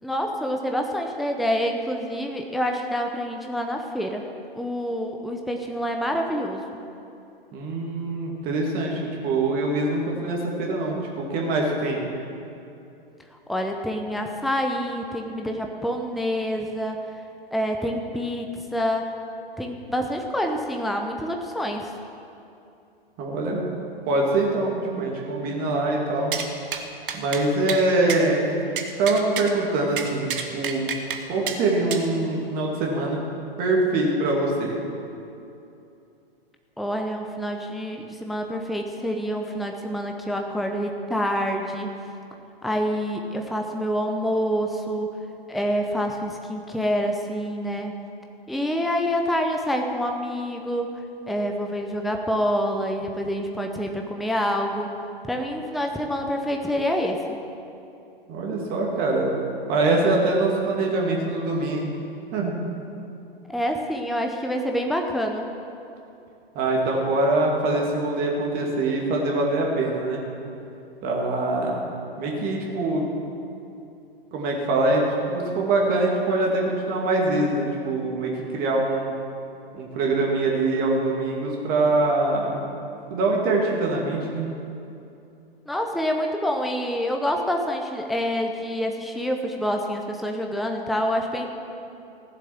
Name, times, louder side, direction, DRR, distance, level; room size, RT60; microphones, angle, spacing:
voice 1, 0.0-4.2 4.6-6.7 13.5-17.0 17.5-19.1 19.6-21.9 36.8-41.9 42.6-45.1 45.5-48.0 48.5-50.9 51.3-54.9 55.2-57.4 63.5-65.5 85.7-91.5, equal, ahead, 2 dB, 0.7 m, -27 dB
voice 2, 7.5-12.0 23.2-23.6 24.1-26.4 27.1-28.6 29.0-30.9 31.3-33.2 33.6-34.8 58.3-59.4 59.7-61.9 62.3-62.5 66.5-70.2 71.0-71.9 72.2-73.0 74.3-79.1 79.7-82.6 83.1-84.5, right 2 dB, 30° right, -1 dB, 2.3 m, -24 dB
sound 1, 26.3-26.5 26.7-26.8 27.1-27.4 27.7-27.8 28.1-28.2 28.8-29.5 30.0-31.2 31.5-31.6 31.9-32.1, right 7 dB, 60° right, 1.4 m, -29 dB
15.5 x 7.4 x 7.2 m, 2.7 s
figure-of-eight pair, 110°, 30 cm